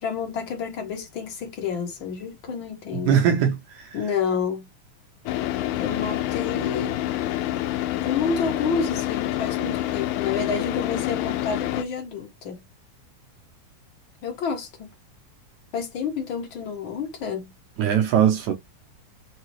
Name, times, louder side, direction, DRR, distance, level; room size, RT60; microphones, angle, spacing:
voice 1, 0.0-3.1 3.9-4.6 5.8-7.0 8.0-12.6 14.2-14.9 15.7-17.5, left 5 dB, 55° left, 1.5 m, -29 dB
voice 2, 3.1-3.9 17.8-18.5, right 8 dB, 75° right, 2.0 m, -20 dB
Car / Idling, 5.3-11.8, left 14 dB, 80° left, 1.9 m, -27 dB
5.6 x 2.3 x 3.1 m
omnidirectional pair, 3.6 m